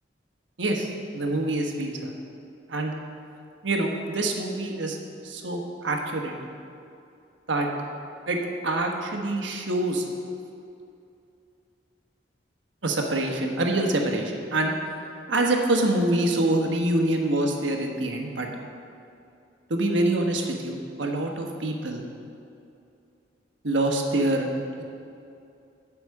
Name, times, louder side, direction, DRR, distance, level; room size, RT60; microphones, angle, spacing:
voice 1, 0.6-2.1 2.7-2.9 3.6-5.0 5.2-6.3 7.5-7.7 8.3-10.0 12.8-14.7 15.3-18.5 19.7-22.0 23.6-24.5, right 1 dB, 90° right, 2 dB, 1.2 m, -25 dB
8.3 x 6.0 x 7.8 m, 2.6 s
head